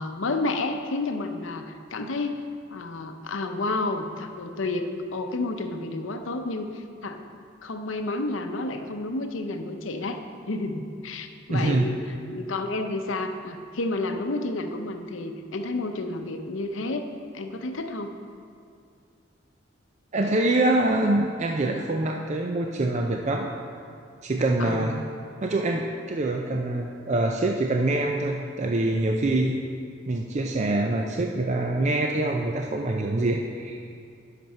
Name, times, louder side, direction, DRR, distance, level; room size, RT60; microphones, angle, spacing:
voice 1, 0.0-2.4 2.7-7.3 7.6-12.0 12.3-17.1 17.3-18.1 24.6-25.0, left 2 dB, 75° left, 6 dB, 0.7 m, -30 dB
voice 2, 11.5-11.9 20.1-23.5 24.2-25.0 25.4-29.6 30.1-33.8, right 2 dB, 35° right, 1 dB, 0.5 m, -25 dB
10.5 x 6.0 x 5.5 m, 2.3 s
head